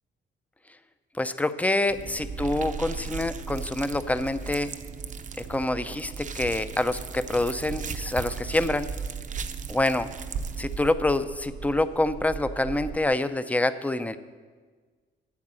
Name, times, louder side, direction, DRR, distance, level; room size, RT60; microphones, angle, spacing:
voice 1, 1.2-4.7 5.5-8.9 9.7-10.1 10.6-14.2, left 2 dB, 5° left, 12 dB, 0.6 m, -26 dB
sound 1, 1.9-11.0, right 6 dB, 40° right, 0.7 m, -40 dB
sound 2, 1.9-13.0, right 5 dB, 80° right, 1.1 m, -38 dB
9.6 x 7.9 x 7.6 m, 1.5 s
cardioid pair, 90°, 20 cm